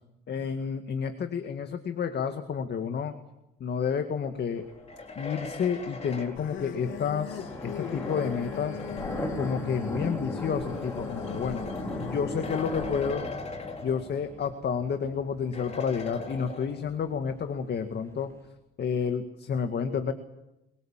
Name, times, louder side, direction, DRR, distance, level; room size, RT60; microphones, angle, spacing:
voice 1, 0.3-3.1 3.6-4.6 5.2-8.8 9.4-11.7 12.0-13.3 13.8-18.3 18.8-20.1, left 6 dB, 55° left, 7 dB, 2.0 m, -30 dB
sound 1, 4.6-18.5, equal, 15° left, 5.4 m, -39 dB
sound 2, 4.7-9.4 10.3-14.5 14.8-14.9 15.5-17.1, left 4 dB, 30° left, 3.8 m, -41 dB
sound 3, 6.4-13.1, left 8 dB, 80° left, 2.8 m, -39 dB
24.5 x 22.5 x 7.5 m, 0.92 s
cardioid pair, 90°, 20 cm